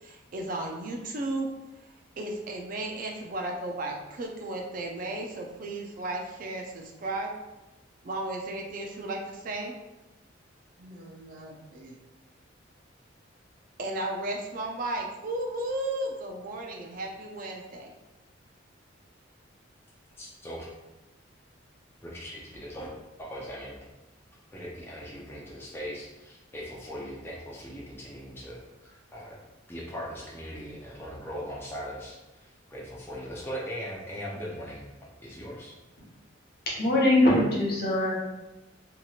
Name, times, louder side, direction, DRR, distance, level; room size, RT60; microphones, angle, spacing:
voice 1, 0.0-1.5 2.2-7.3 8.0-9.8 10.8-12.0 13.8-17.9, right 2 dB, 45° right, 1 dB, 0.4 m, -34 dB
voice 2, 20.2-20.7 22.0-22.9 23.2-23.8 24.5-29.3 29.7-34.9 35.2-35.7, equal, 10° left, -5 dB, 0.5 m, -39 dB
voice 3, 36.8-38.1, left 1 dB, 50° left, -5 dB, 0.9 m, -22 dB
2.9 x 2.8 x 2.4 m, 1.0 s
head